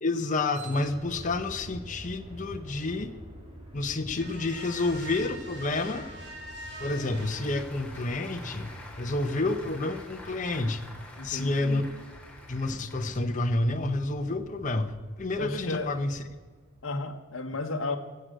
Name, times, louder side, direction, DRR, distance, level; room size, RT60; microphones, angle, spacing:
voice 1, 0.0-3.1 3.7-6.1 6.8-8.7 9.0-10.8 11.2-11.8 12.5-14.9 15.2-16.2, left 2 dB, 35° left, 6 dB, 0.8 m, -29 dB
sound 1, 0.5-1.3 4.1-8.0, equal, 50° right, 3.9 m, -44 dB
Aircraft, 0.8-17.0, equal, 25° right, 2.7 m, -48 dB
Applause, 6.6-13.7, left 1 dB, 5° left, 2.1 m, -48 dB
voice 2, 11.2-11.8 15.4-16.0 16.8-18.0, left 2 dB, 60° left, 3 dB, 1.2 m, -33 dB
17.5 x 7.7 x 8.0 m, 1.3 s
head